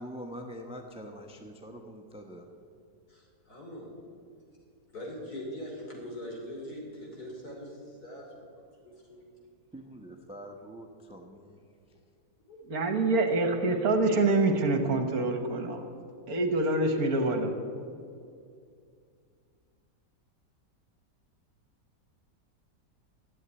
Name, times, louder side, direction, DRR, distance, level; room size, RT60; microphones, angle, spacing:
voice 1, 0.0-2.5 9.7-11.6, equal, 5° right, 3 dB, 0.6 m, -44 dB
voice 2, 3.1-3.9 4.9-9.2 12.5-13.0, equal, 60° left, -1 dB, 3.5 m, -42 dB
voice 3, 12.7-15.8 16.3-17.5, right 2 dB, 60° right, 6 dB, 1.5 m, -26 dB
12.0 x 8.1 x 9.4 m, 2.3 s
omnidirectional pair, 1.8 m